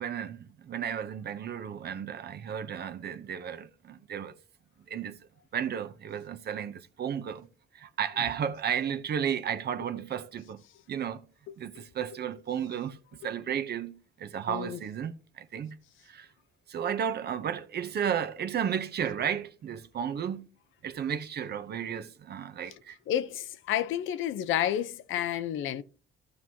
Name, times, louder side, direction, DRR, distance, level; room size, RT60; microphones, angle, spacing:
voice 1, 0.0-4.3 4.9-5.2 5.5-7.5 7.7-11.2 11.6-13.0 13.2-15.8 16.1-16.3 16.7-20.5 20.8-23.0, right 8 dB, 55° right, 0.7 m, -33 dB
voice 2, 11.5-11.8 14.5-14.8 22.7-22.8 23.1-25.8, left 11 dB, 80° left, 0.7 m, -31 dB
14.0 x 6.1 x 2.8 m
cardioid pair, 90°, 20 cm